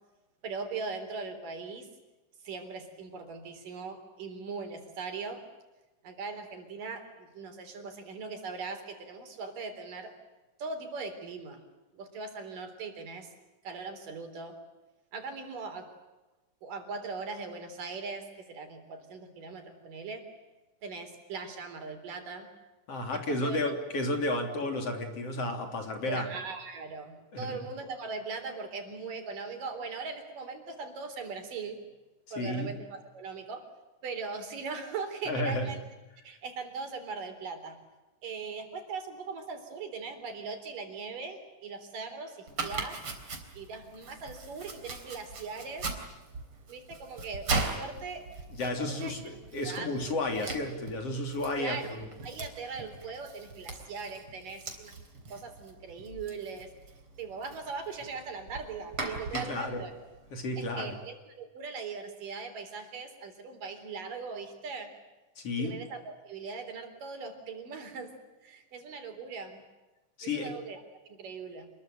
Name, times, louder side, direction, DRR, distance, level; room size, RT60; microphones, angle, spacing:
voice 1, 0.4-1.9 2.4-5.4 6.0-10.1 10.6-11.6 11.9-13.3 13.6-14.6 15.1-15.9 16.6-20.2 20.8-22.5 23.1-23.8 24.2-24.4 26.1-31.8 32.3-33.6 34.0-35.8 36.2-37.8 38.2-43.0 43.6-45.9 46.7-48.2 48.6-49.2 49.6-50.0 50.4-50.6 51.6-51.9 52.2-54.9 55.3-56.7 57.2-59.9 60.6-64.9 65.6-68.1 68.4-69.6 70.2-71.7, right 4 dB, 85° right, 6 dB, 5.4 m, -40 dB
voice 2, 22.9-26.3 27.3-27.6 32.4-32.8 35.3-35.7 48.5-52.1 59.3-59.8 60.3-61.0 65.4-65.8 70.2-70.6, left 2 dB, 45° left, 4 dB, 4.1 m, -32 dB
Domestic sounds home sounds, 42.5-60.9, right 3 dB, 40° right, 4.3 m, -40 dB
28.5 x 21.5 x 9.1 m, 1.1 s
omnidirectional pair, 3.7 m